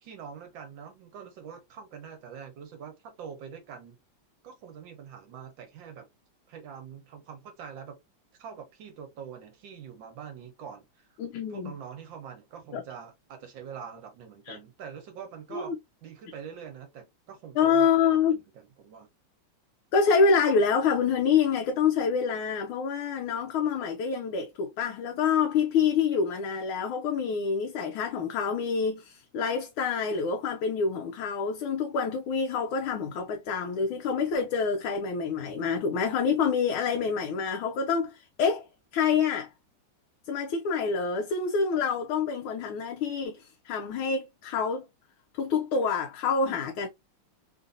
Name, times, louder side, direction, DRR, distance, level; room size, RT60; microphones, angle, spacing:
voice 1, 0.0-3.9 4.4-6.0 6.5-8.0 8.4-11.1 11.5-15.7 16.0-19.1 46.5-46.6, right 7 dB, 70° right, 1.5 m, -44 dB
voice 2, 11.2-11.7 12.7-12.8 14.5-14.6 15.5-15.7 17.6-18.4 19.9-38.7 38.9-39.5 40.3-44.8 45.4-46.9, left 5 dB, 80° left, 1.4 m, -27 dB
3.7 x 2.5 x 2.5 m
omnidirectional pair, 2.3 m